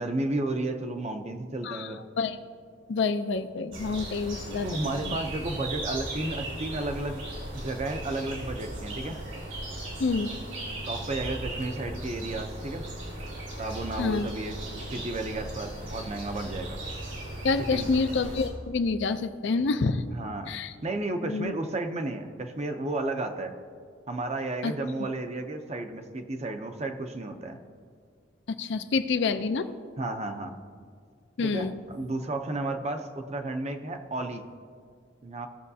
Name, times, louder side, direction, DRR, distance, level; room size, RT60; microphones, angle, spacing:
voice 1, 0.0-2.0 4.6-7.2 7.5-9.2 10.9-12.8 13.6-16.8 17.7-17.9 20.1-23.6 24.1-27.6 30.0-30.5 31.4-34.4 35.2-35.5, right 2 dB, 35° right, 6 dB, 0.6 m, -33 dB
voice 2, 1.6-2.4 2.9-4.7 5.0-5.2 10.0-10.3 14.0-14.3 17.4-20.1 20.5-20.7 21.2-21.5 24.6-24.7 28.6-29.7 31.4-31.8, left 4 dB, 60° left, 9 dB, 0.5 m, -27 dB
sound 1, 3.7-18.5, right 1 dB, 85° right, 2.5 m, -37 dB
17.0 x 6.4 x 2.7 m, 2.1 s
head